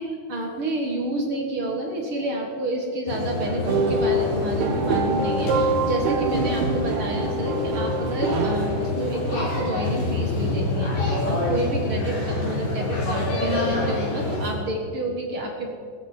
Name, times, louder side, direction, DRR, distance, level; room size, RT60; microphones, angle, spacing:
voice 1, 0.0-15.7, right 1 dB, 50° right, 1 dB, 1.8 m, -29 dB
Jubilee Line Train Arriving, 3.1-14.5, left 2 dB, 85° left, 6.5 m, -27 dB
sound 1, 3.7-8.7, right 2 dB, 65° right, 1.9 m, -25 dB
19.5 x 15.0 x 4.5 m, 2.1 s
omnidirectional pair, 4.7 m